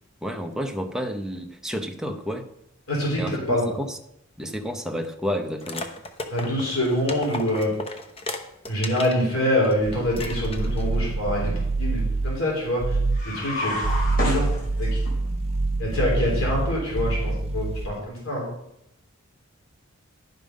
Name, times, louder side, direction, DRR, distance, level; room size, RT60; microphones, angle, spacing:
voice 1, 0.2-2.5 3.2-4.0 4.4-5.9, equal, 5° right, 4 dB, 0.8 m, -30 dB
voice 2, 2.9-3.7 6.3-7.7 8.7-13.0 13.2-13.8 14.2-15.0 15.8-18.5, left 1 dB, 75° left, -3 dB, 3.6 m, -25 dB
sound 1, 5.6-9.2 9.6-9.8 10.1-10.9, left 2 dB, 25° left, 0.8 m, -35 dB
sound 2, 9.9-12.4 12.8-13.3 13.7-18.0, right 2 dB, 30° right, 0.4 m, -26 dB
sound 3, 13.1-15.1, left 1 dB, 45° left, 3.7 m, -30 dB
11.5 x 5.5 x 5.2 m, 0.78 s
head